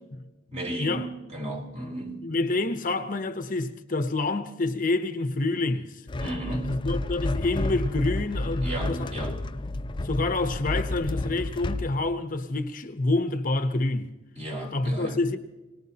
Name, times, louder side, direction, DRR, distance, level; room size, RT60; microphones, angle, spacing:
voice 1, 0.5-2.2 6.2-6.7 8.6-9.3 14.4-15.2, right 1 dB, 35° right, 3.8 m, -33 dB
voice 2, 2.2-6.0 6.6-9.3 10.0-14.1 14.7-15.4, left 2 dB, 45° left, 0.9 m, -27 dB
sound 1, 6.1-11.9, left 2 dB, 25° left, 0.5 m, -30 dB
26.0 x 18.5 x 2.9 m
head